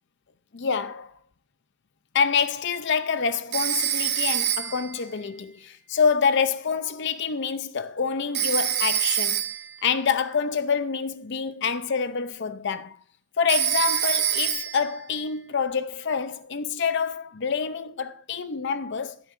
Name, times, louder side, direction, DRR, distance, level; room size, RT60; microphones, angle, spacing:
voice 1, 0.5-1.1 2.1-9.4 9.8-13.0 13.4-19.2, left 6 dB, 50° left, 0.5 m, -26 dB
Telephone, 3.5-4.9 8.3-9.7 13.5-14.9, right 10 dB, 45° right, 0.9 m, -25 dB
15.0 x 8.3 x 2.5 m
head